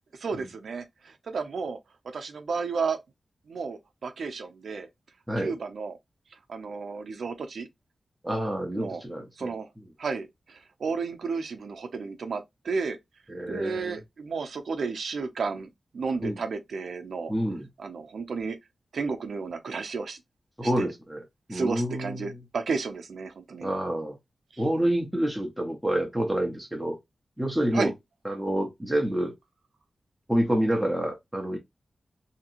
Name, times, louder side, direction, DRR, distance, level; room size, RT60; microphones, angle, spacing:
voice 1, 0.1-1.8 2.1-3.0 3.5-4.9 5.4-6.0 6.5-7.7 8.7-9.0 9.4-9.7 10.0-13.0 13.5-17.3 17.8-18.6 18.9-20.2 20.6-20.9 21.5-23.7 24.5-24.6 27.7-27.9, right 4 dB, 75° right, 0.6 m, -32 dB
voice 2, 8.2-9.5 13.3-14.0 16.2-16.4 17.3-17.7 20.6-21.2 21.5-22.4 23.6-24.2 24.6-27.0 27.4-27.9 28.2-29.3 30.3-31.6, right 1 dB, 5° right, 0.8 m, -28 dB
2.9 x 2.8 x 2.5 m
wide cardioid pair, 170°, 0 cm